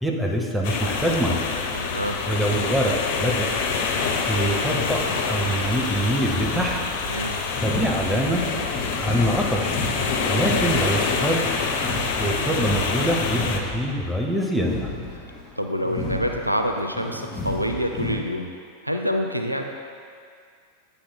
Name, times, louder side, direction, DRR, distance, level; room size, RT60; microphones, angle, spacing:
voice 1, 0.0-1.5 2.3-3.5 4.3-6.8 7.6-8.6 9.0-9.8 10.3-11.5 12.2-14.9, equal, ahead, -1 dB, 0.8 m, -24 dB
sound 1, 0.6-13.6, left 5 dB, 50° left, 0.6 m, -26 dB
voice 2, 1.7-2.2 7.1-7.4 10.3-10.7 15.6-18.5 18.8-19.6, equal, 90° right, 4 dB, 0.4 m, -27 dB
sound 2, 6.4-18.2, left 2 dB, 20° left, 1.2 m, -33 dB
9.3 x 6.8 x 2.2 m, 2.2 s
figure-of-eight pair, 90°, 0 cm